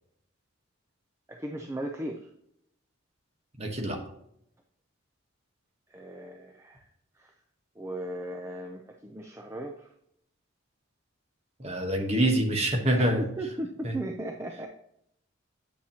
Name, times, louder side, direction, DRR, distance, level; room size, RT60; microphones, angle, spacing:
voice 1, 1.3-2.3 5.9-6.9 7.2-7.3 7.8-9.9 13.0-14.7, right 1 dB, 15° right, 2 dB, 0.4 m, -37 dB
voice 2, 3.6-4.0 11.6-13.2 13.8-13.9, right 1 dB, 30° right, 2 dB, 1.2 m, -25 dB
8.6 x 6.4 x 2.8 m, 0.75 s
head